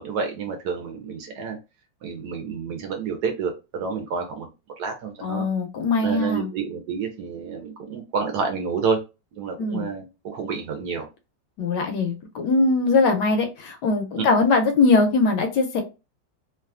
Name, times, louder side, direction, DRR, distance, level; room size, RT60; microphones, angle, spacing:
voice 1, 0.0-1.6 2.0-4.5 4.8-5.5 6.0-9.0 9.4-11.0 14.2-14.3, right 5 dB, 70° right, 4 dB, 1.0 m, -29 dB
voice 2, 5.2-6.5 9.6-9.9 11.6-15.8, left 3 dB, 75° left, 5 dB, 1.1 m, -21 dB
3.1 x 2.3 x 2.3 m, 0.28 s
omnidirectional pair, 2.0 m